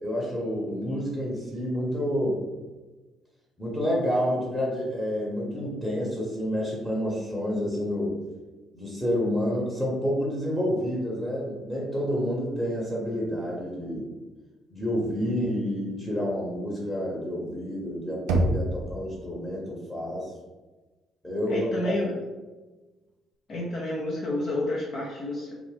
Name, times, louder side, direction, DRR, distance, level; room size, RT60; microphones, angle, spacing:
voice 1, 0.0-2.4 3.6-8.1 8.7-14.1 14.7-20.3 21.2-21.9, equal, 5° left, -5 dB, 0.9 m, -29 dB
Knock, 18.3-19.2, right 1 dB, 70° right, 0.3 m, -25 dB
voice 2, 21.5-22.1 23.5-25.5, left 1 dB, 45° left, -4 dB, 0.5 m, -30 dB
2.4 x 2.4 x 3.3 m, 1.2 s
figure-of-eight pair, 45°, 0 cm